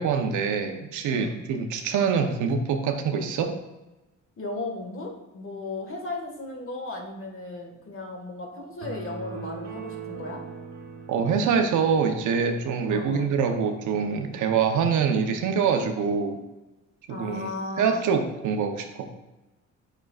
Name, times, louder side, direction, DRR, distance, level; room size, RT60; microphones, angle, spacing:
voice 1, 0.0-3.5 11.1-16.4 17.1-17.5 17.8-19.0, right 6 dB, 80° right, 6 dB, 0.9 m, -25 dB
voice 2, 4.4-10.4 12.9-13.3 17.1-18.0, left 2 dB, 45° left, 2 dB, 1.7 m, -36 dB
sound 1, 8.8-12.4, right 6 dB, 65° right, 1.2 m, -40 dB
9.0 x 6.3 x 2.4 m, 1.0 s
cardioid pair, 90°, 30 cm